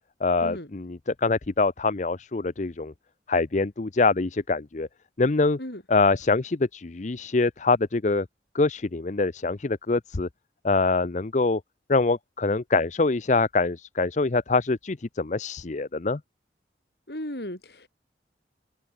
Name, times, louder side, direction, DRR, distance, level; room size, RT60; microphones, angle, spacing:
voice 1, 0.2-2.9 3.3-4.9 5.2-5.6 5.9-8.3 8.5-10.3 10.6-11.6 11.9-16.2, left 3 dB, 45° left, 0.6 m, -24 dB
voice 2, 17.1-17.9, left 1 dB, 65° left, 6.7 m, -35 dB
head